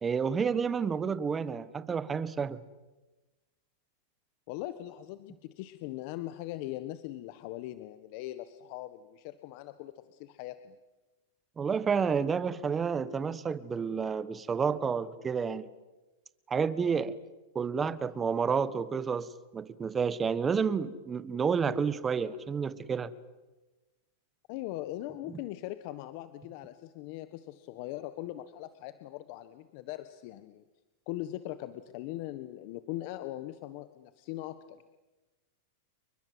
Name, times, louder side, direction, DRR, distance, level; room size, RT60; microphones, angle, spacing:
voice 1, 0.0-2.6 11.6-15.7 16.5-17.2 17.5-23.1, right 6 dB, 20° right, 15 dB, 1.5 m, -30 dB
voice 2, 4.5-10.8 24.5-30.6 31.1-34.8, left 15 dB, 50° left, 11 dB, 1.3 m, -40 dB
29.5 x 23.0 x 8.0 m, 1.1 s
hypercardioid pair, 130°, 0 cm